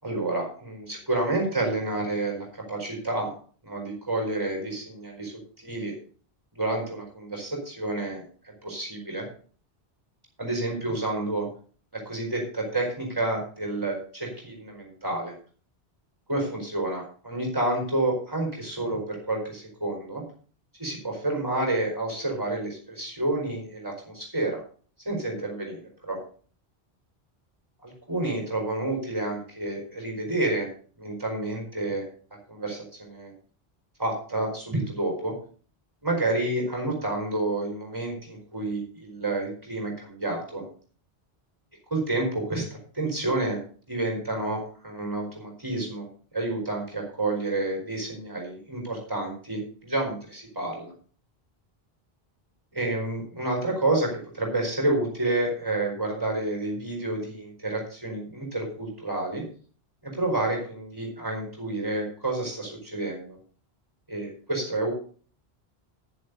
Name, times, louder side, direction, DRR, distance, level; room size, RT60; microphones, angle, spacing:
voice 1, 0.0-3.3 3.6-5.9 6.5-8.2 8.6-9.3 10.4-11.5 11.9-15.3 16.3-20.2 20.8-24.6 25.0-26.2 27.8-30.7 31.0-32.0 32.5-33.3 34.0-35.3 36.0-40.6 41.9-43.6 43.9-46.1 46.3-50.9 52.7-59.4 60.0-63.4 64.1-64.9, right 2 dB, 20° right, 1 dB, 4.7 m, -29 dB
11.0 x 10.5 x 4.1 m, 0.42 s
omnidirectional pair, 1.1 m